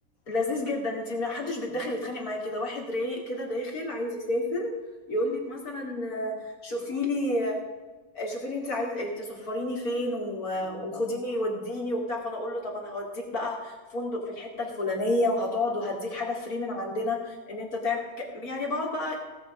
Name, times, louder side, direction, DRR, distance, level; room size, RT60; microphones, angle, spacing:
voice 1, 0.3-4.7 5.1-7.6 8.1-19.2, left 1 dB, 45° left, -1 dB, 3.0 m, -30 dB
17.0 x 7.8 x 5.1 m, 1.3 s
omnidirectional pair, 2.1 m